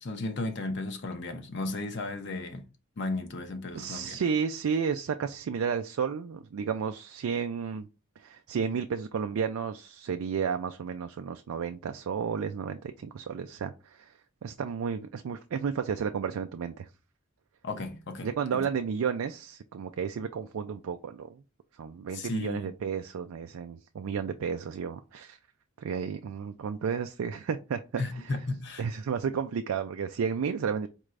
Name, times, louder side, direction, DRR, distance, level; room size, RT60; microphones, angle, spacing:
voice 1, 0.0-2.6 3.0-4.2 17.6-18.7 22.1-22.7 28.0-28.8, left 2 dB, 55° left, 0.7 m, -34 dB
voice 2, 3.7-7.9 8.2-14.1 14.4-16.9 18.2-21.4 21.8-25.4 25.8-28.3 28.8-30.9, right 6 dB, 85° right, 0.4 m, -32 dB
4.4 x 3.2 x 2.5 m
head